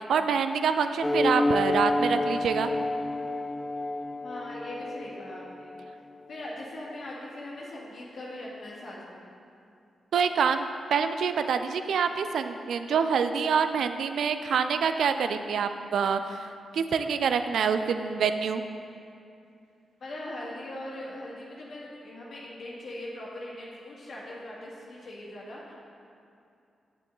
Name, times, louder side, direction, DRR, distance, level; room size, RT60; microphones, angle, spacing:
voice 1, 0.1-2.7 10.1-18.7, right 6 dB, 80° right, 9 dB, 0.3 m, -26 dB
sound 1, 1.0-6.0, left 2 dB, 10° left, 0.6 m, -29 dB
voice 2, 4.2-5.8 6.3-9.3 20.0-25.7, left 1 dB, 65° left, -5 dB, 1.7 m, -40 dB
7.7 x 7.3 x 3.7 m, 2.5 s
supercardioid pair, 50°, 0 cm